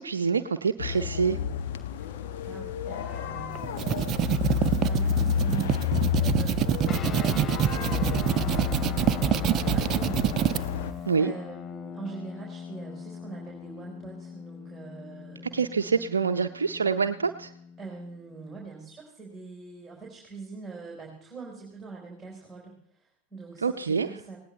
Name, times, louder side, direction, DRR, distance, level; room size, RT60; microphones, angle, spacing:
voice 1, 0.0-1.4 11.1-11.3 15.5-17.5 23.6-24.1, right 5 dB, 70° right, 7 dB, 0.6 m, -26 dB
sound 1, 0.8-10.9, left 9 dB, 50° left, 1.2 m, -30 dB
voice 2, 2.4-15.7 17.8-24.4, right 4 dB, 5° right, -2 dB, 4.2 m, -44 dB
sound 2, 3.6-10.6, right 11 dB, 30° right, 0.5 m, -26 dB
sound 3, 6.8-18.7, left 7 dB, 25° left, 0.6 m, -40 dB
19.0 x 18.5 x 3.2 m, 0.72 s
figure-of-eight pair, 90°, 0 cm